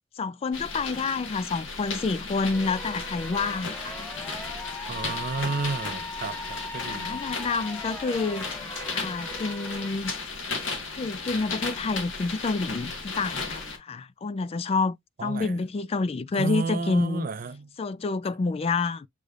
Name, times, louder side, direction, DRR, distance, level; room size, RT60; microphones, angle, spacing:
voice 1, 0.2-4.0 6.9-8.6 8.9-10.1 10.9-15.0 15.2-17.3 17.8-19.1, left 4 dB, 30° left, 0.3 m, -28 dB
sound 1, 0.5-13.8, left 4 dB, 75° left, 1.5 m, -35 dB
sound 2, 2.5-9.9, left 2 dB, 5° left, 1.1 m, -39 dB
voice 2, 4.9-7.2 15.2-15.5 16.3-17.7, right 4 dB, 45° right, 0.5 m, -32 dB
6.6 x 3.2 x 2.4 m
head